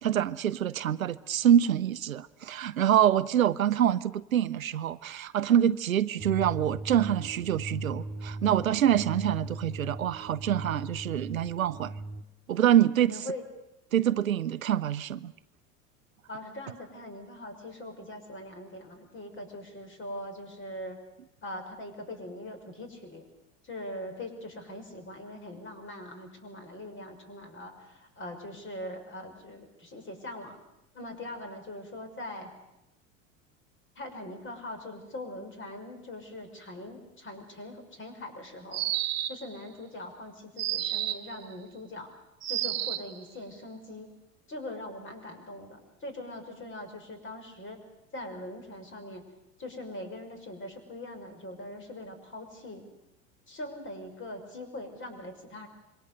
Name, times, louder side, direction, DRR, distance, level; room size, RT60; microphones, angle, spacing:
voice 1, 0.0-11.9 12.5-13.2 13.9-15.3, right 10 dB, 85° right, 0.8 m, -25 dB
sound 1, 6.2-12.2, right 2 dB, 15° right, 2.0 m, -38 dB
voice 2, 13.1-13.4 16.3-21.0 21.4-23.2 23.6-30.6 30.9-32.5 34.0-38.8 39.3-42.1 42.5-44.1 44.5-47.8 48.1-49.2 49.6-52.8 53.5-55.7, left 1 dB, 30° left, 6.0 m, -42 dB
sound 2, 38.7-39.5 40.6-41.3 42.4-43.1, right 14 dB, 40° right, 1.8 m, -30 dB
26.5 x 23.0 x 6.8 m
hypercardioid pair, 80°, 40 cm